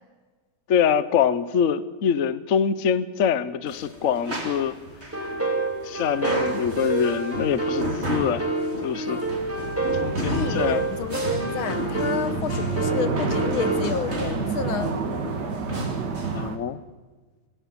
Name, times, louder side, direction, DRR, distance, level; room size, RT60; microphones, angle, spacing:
voice 1, 0.7-4.8 5.8-8.5 8.8-9.2 10.0-10.8 16.3-16.8, left 8 dB, 50° left, 14 dB, 1.0 m, -24 dB
sound 1, 3.7-16.5, right 1 dB, 30° right, 3.5 m, -33 dB
sound 2, 5.1-13.9, right 2 dB, 5° right, 2.3 m, -28 dB
sound 3, 9.1-16.6, right 5 dB, 55° right, 2.1 m, -31 dB
voice 2, 10.3-14.9, left 7 dB, 80° left, 12 dB, 1.9 m, -31 dB
24.5 x 16.5 x 7.1 m, 1.4 s
omnidirectional pair, 2.3 m